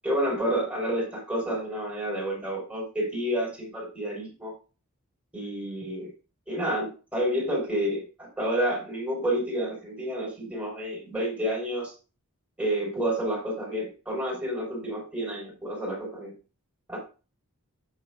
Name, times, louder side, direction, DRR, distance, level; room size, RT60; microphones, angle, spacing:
voice 1, 0.0-4.5 5.3-6.1 6.5-11.9 12.6-16.3 16.9-17.0, right 1 dB, 5° right, -5 dB, 5.5 m, -29 dB
9.5 x 9.1 x 2.6 m, 0.34 s
head